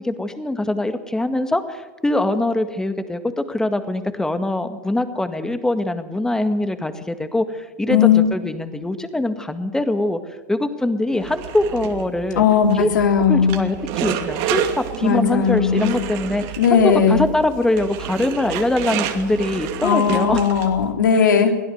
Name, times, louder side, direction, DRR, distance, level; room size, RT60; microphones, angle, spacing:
voice 1, 0.0-10.2 10.5-12.4 12.7-12.9 13.3-20.5, left 1 dB, 5° left, 9 dB, 1.9 m, -23 dB
voice 2, 7.9-8.3 12.3-13.6 15.0-16.0 16.6-17.2 19.8-21.6, left 7 dB, 80° left, 4 dB, 3.4 m, -17 dB
sound 1, 11.2-20.9, right 9 dB, 50° right, 2.6 m, -29 dB
23.0 x 16.0 x 8.0 m, 1.2 s
hypercardioid pair, 115°, 10 cm